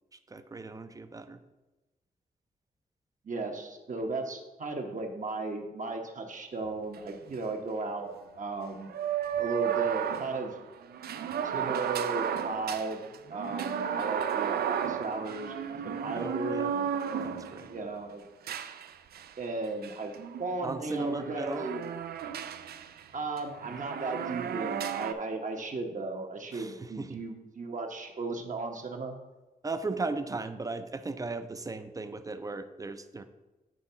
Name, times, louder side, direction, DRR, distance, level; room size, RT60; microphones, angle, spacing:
voice 1, 0.1-1.4 16.1-16.7 17.2-17.7 20.6-21.7 26.5-27.2 29.6-33.2, right 3 dB, 20° right, 10 dB, 0.5 m, -37 dB
voice 2, 3.2-8.1 8.4-8.9 9.4-10.6 11.4-13.0 13.3-17.3 17.7-18.3 19.4-20.1 20.4-21.8 23.1-29.2, right 3 dB, 55° right, 3 dB, 1.1 m, -35 dB
sound 1, 6.6-6.7 6.9-7.0 8.9-17.8 18.5-19.3 19.8-23.0 23.4-25.1, right 8 dB, 90° right, 0.4 m, -33 dB
7.8 x 3.5 x 5.6 m, 1.1 s
cardioid pair, 85°, 16 cm